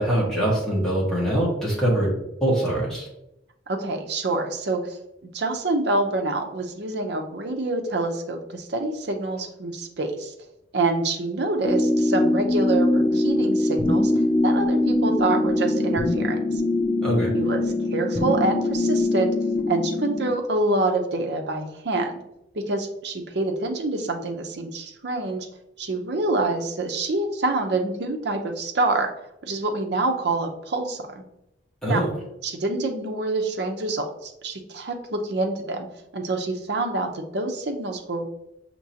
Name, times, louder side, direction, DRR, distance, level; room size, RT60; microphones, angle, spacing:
voice 1, 0.0-2.1 2.4-3.1 17.0-17.3 31.8-32.1, right 1 dB, 5° left, -6 dB, 1.4 m, -23 dB
voice 2, 3.7-5.0 5.3-10.3 10.7-14.1 14.4-16.4 17.3-17.6 17.9-19.3 19.7-22.2 22.5-25.5 25.8-29.1 29.4-31.2 31.9-32.0 32.4-35.9 36.1-38.3, right 2 dB, 65° right, 3 dB, 0.7 m, -26 dB
sound 1, 11.6-20.3, left 2 dB, 25° left, 0.4 m, -22 dB
5.9 x 2.9 x 2.8 m, 0.85 s
head